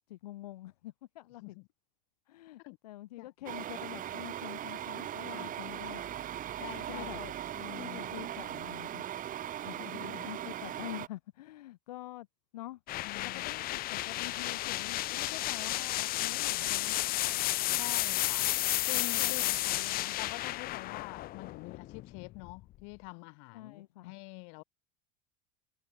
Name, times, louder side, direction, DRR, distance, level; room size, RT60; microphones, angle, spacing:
voice 1, 0.1-1.6 2.3-6.2 6.9-7.2 7.8-9.0 10.0-12.3 12.5-12.8 13.2-17.0 19.2-20.2 23.5-24.1, left 16 dB, 90° left, 3.4 m, -46 dB
sound 1, 3.5-11.1, right 11 dB, 45° right, 5.2 m, -39 dB
voice 2, 6.6-8.1 9.6-10.3 13.0-13.5 17.8-19.4 20.2-24.6, left 40 dB or more, 70° left, 6.5 m, -46 dB
sound 2, 12.9-22.6, left 16 dB, 50° left, 0.9 m, -32 dB
supercardioid pair, 100°, 20 cm